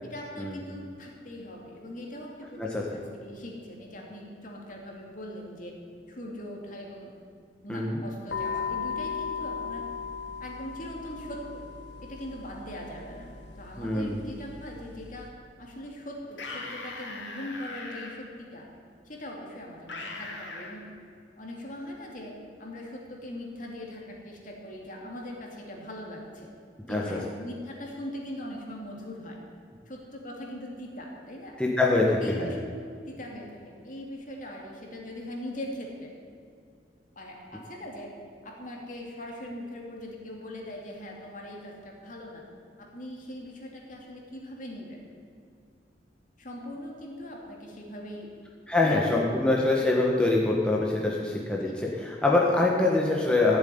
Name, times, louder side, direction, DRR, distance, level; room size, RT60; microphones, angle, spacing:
voice 1, 0.0-5.7 6.1-7.1 7.6-9.8 10.4-11.6 12.0-13.3 13.6-15.3 15.6-18.6 19.0-20.9 21.4-26.5 26.9-29.4 29.9-31.6 32.2-32.7 33.1-36.1 37.1-38.1 38.4-42.4 42.8-45.0 46.4-48.3 48.8-49.7 51.7-51.9, left 1 dB, 45° left, -1 dB, 2.8 m, -41 dB
sound 1, 8.3-15.3, left 6 dB, 70° left, 1.8 m, -37 dB
voice 2, 13.8-14.2 26.9-27.2 31.6-32.5 48.7-53.6, left 2 dB, 5° left, -3 dB, 1.4 m, -24 dB
sound 2, 16.3-18.1 19.9-20.7, left 3 dB, 90° left, 2.4 m, -39 dB
15.0 x 7.7 x 9.6 m, 2.3 s
head